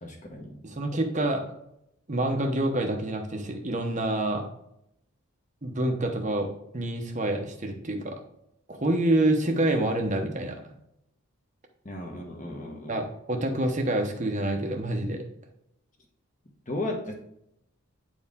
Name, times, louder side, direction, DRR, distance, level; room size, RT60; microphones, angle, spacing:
voice 1, 0.0-0.6 11.8-13.0 16.7-17.1, left 2 dB, 35° left, 2 dB, 1.2 m, -35 dB
voice 2, 0.6-1.4 2.1-4.5 5.6-6.5 6.7-8.2 8.7-10.7 12.9-15.3, right 1 dB, 35° right, 3 dB, 0.8 m, -27 dB
8.9 x 4.6 x 3.6 m, 0.77 s
head